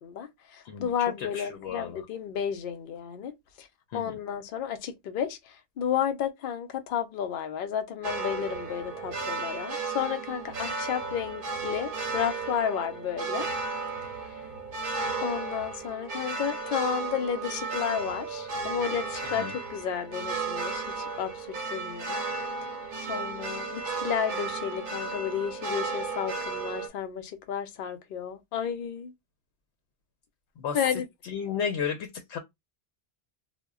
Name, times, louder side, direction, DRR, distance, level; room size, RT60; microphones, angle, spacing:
voice 1, 0.0-3.7 3.9-5.4 5.8-13.5 15.2-22.2 23.0-29.1 30.7-31.1, left 8 dB, 60° left, 0.7 m, -32 dB
voice 2, 0.6-2.0 3.9-4.2 19.2-19.6 30.6-32.4, left 7 dB, 85° left, 0.9 m, -34 dB
sound 1, 8.0-26.9, right 4 dB, 60° right, 0.7 m, -34 dB
2.1 x 2.1 x 3.5 m
omnidirectional pair, 1.1 m